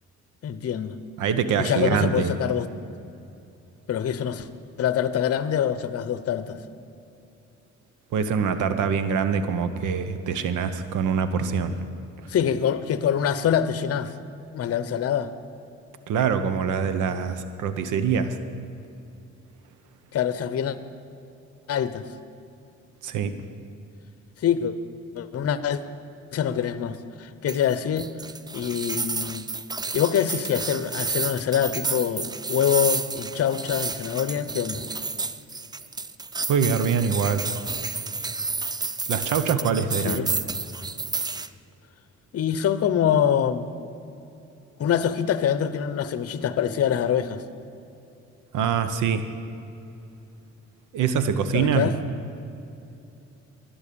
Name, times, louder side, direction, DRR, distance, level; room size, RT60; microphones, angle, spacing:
voice 1, 0.4-1.0 1.6-2.7 3.9-4.5 4.8-6.6 12.3-14.1 14.5-15.3 20.1-20.8 21.7-22.1 24.4-24.7 25.2-25.8 26.3-28.1 28.5-29.5 29.9-34.8 40.0-40.3 42.3-43.7 44.8-47.4 51.5-51.9, left 9 dB, 55° left, 13 dB, 0.8 m, -25 dB
voice 2, 1.2-2.3 8.1-11.7 16.1-18.4 23.0-23.3 36.5-37.4 39.1-40.3 48.5-49.2 50.9-51.9, right 6 dB, 80° right, 10 dB, 0.9 m, -24 dB
sound 1, 27.5-41.5, right 4 dB, 15° right, 0.4 m, -31 dB
12.5 x 10.5 x 6.9 m, 2.8 s
cardioid pair, 90°, 30 cm